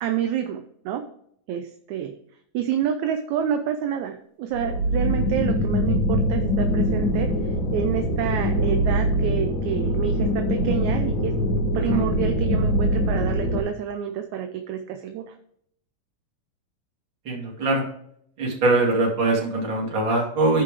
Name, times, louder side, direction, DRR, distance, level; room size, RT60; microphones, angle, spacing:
voice 1, 0.0-1.0 1.5-2.2 2.5-7.3 7.7-11.4 11.7-15.4, right 9 dB, 75° right, 6 dB, 1.9 m, -28 dB
sound 1, 4.5-13.6, equal, 40° left, 2.4 m, -23 dB
voice 2, 17.3-17.8 18.4-20.6, right 2 dB, 35° right, -2 dB, 2.7 m, -22 dB
14.0 x 5.2 x 3.4 m, 0.68 s
omnidirectional pair, 3.8 m